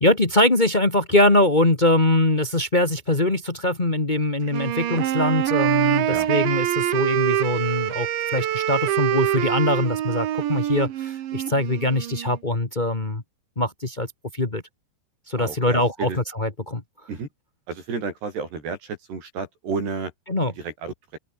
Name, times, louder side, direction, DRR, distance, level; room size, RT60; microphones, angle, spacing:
voice 1, 0.0-13.2 13.5-14.1 14.3-14.6 15.3-16.1 16.3-16.8 20.3-20.5, left 1 dB, 70° left, 0.4 m, -22 dB
Wind instrument woodwind instrument, 4.5-12.4, right 12 dB, 80° right, 4.3 m, -25 dB
voice 2, 15.4-16.2 17.1-17.3 17.7-20.1 20.6-21.2, right 4 dB, 65° right, 9.3 m, -31 dB
open air
omnidirectional pair, 5.2 m